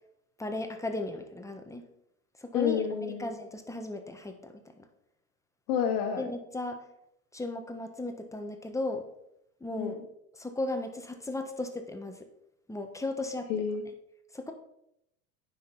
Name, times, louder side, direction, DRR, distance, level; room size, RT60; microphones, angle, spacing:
voice 1, 0.4-1.8 2.4-2.8 3.2-4.9 6.2-6.8 7.3-9.1 9.6-10.0 10.4-12.3 12.7-13.5 14.3-14.5, left 2 dB, 5° left, 5 dB, 1.2 m, -36 dB
voice 2, 2.5-3.3 5.7-6.3 9.8-10.0 13.5-13.8, left 7 dB, 70° left, 4 dB, 1.4 m, -29 dB
9.3 x 5.8 x 4.0 m, 0.78 s
hypercardioid pair, 100°, 45 cm